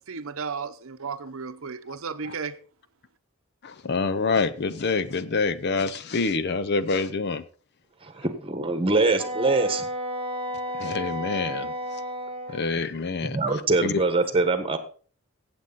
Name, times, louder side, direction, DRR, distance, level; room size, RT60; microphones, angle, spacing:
voice 1, 0.1-2.6, right 5 dB, 65° right, 0.8 m, -34 dB
voice 2, 3.6-7.4 10.8-11.7 12.5-13.4 13.8-14.0, left 4 dB, 50° left, 0.6 m, -26 dB
voice 3, 8.0-9.8 12.5-12.6 13.3-14.8, right 3 dB, 25° right, 1.4 m, -23 dB
Wind instrument woodwind instrument, 9.2-12.6, equal, 5° left, 4.0 m, -32 dB
16.0 x 7.8 x 4.1 m
head